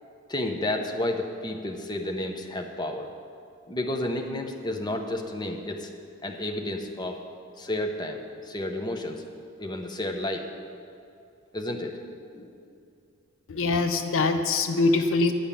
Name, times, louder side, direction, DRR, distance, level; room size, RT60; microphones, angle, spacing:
voice 1, 0.3-3.1 3.7-5.9 6.2-7.2 7.6-9.2 9.6-10.5 11.5-12.0 12.3-12.5, left 1 dB, 20° left, 3 dB, 0.7 m, -31 dB
voice 2, 13.5-15.3, left 3 dB, 65° left, 8 dB, 0.6 m, -23 dB
10.0 x 5.7 x 8.3 m, 2.5 s
head